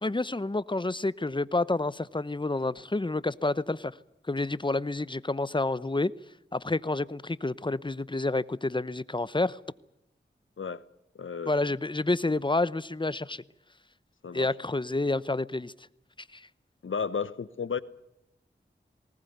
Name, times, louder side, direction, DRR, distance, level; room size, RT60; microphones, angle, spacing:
voice 1, 0.0-3.9 4.3-6.1 6.5-9.6 11.5-13.4 14.3-15.7 16.3-16.5, left 2 dB, 25° left, 0.8 m, -29 dB
voice 2, 11.1-11.5 14.2-14.5 16.8-17.8, left 6 dB, 90° left, 1.0 m, -33 dB
19.5 x 19.0 x 9.3 m
cardioid pair, 45°, 20 cm